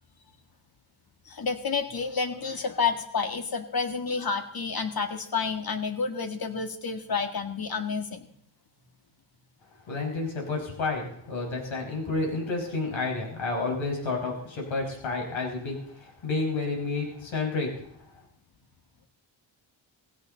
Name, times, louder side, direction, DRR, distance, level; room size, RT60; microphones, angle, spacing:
voice 1, 1.3-8.3, left 5 dB, 50° left, 6 dB, 2.0 m, -30 dB
voice 2, 9.9-18.2, left 3 dB, 80° left, 0 dB, 5.4 m, -30 dB
17.5 x 16.5 x 4.0 m, 0.67 s
cardioid pair, 95°, 46 cm